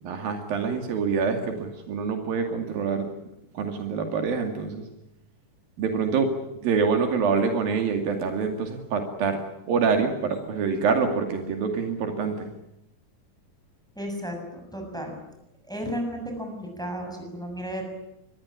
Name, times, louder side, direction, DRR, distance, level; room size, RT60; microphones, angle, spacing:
voice 1, 0.0-3.1 3.5-4.9 5.8-6.3 6.6-9.4 9.7-12.5, right 5 dB, 85° right, 5 dB, 4.3 m, -26 dB
voice 2, 13.9-15.1 15.7-17.8, equal, ahead, 3 dB, 6.7 m, -33 dB
25.0 x 20.5 x 9.9 m, 0.84 s
omnidirectional pair, 4.0 m